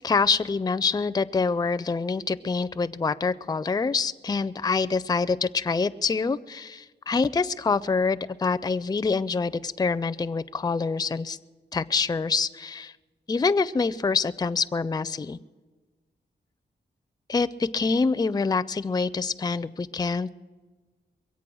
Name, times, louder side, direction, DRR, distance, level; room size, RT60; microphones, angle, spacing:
voice 1, 0.0-11.4 11.7-12.9 13.3-15.4 17.3-20.3, left 4 dB, 20° left, 14 dB, 0.4 m, -26 dB
22.5 x 8.3 x 6.2 m, 1.3 s
cardioid pair, 60°, 19 cm